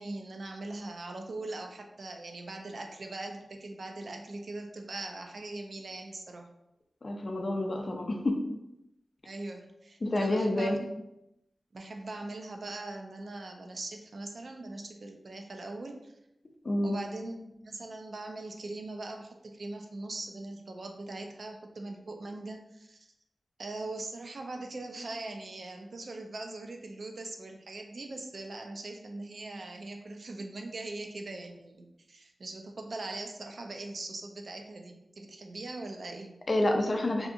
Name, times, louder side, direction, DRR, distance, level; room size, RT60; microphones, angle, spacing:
voice 1, 0.0-6.5 9.2-10.9 11.7-16.1 16.8-23.1 23.6-36.4, right 2 dB, 65° right, 3 dB, 0.4 m, -41 dB
voice 2, 7.0-8.5 10.0-10.8 16.6-17.0 36.5-37.3, left 1 dB, 50° left, 3 dB, 0.4 m, -28 dB
2.7 x 2.4 x 2.5 m, 0.87 s
wide cardioid pair, 90°, 0 cm